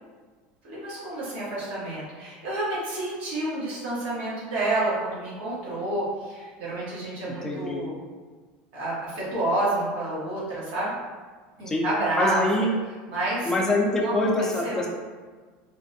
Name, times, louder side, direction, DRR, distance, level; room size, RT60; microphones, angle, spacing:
voice 1, 0.6-8.0 8.7-10.9 11.6-12.4 13.1-13.5 14.0-14.9, right 2 dB, 90° right, -9 dB, 1.2 m, -29 dB
voice 2, 7.4-7.8 11.7-11.8 12.2-12.7 13.5-14.9, left 2 dB, 10° left, -1 dB, 0.4 m, -24 dB
3.3 x 2.1 x 2.7 m, 1.4 s
cardioid pair, 160°, 5 cm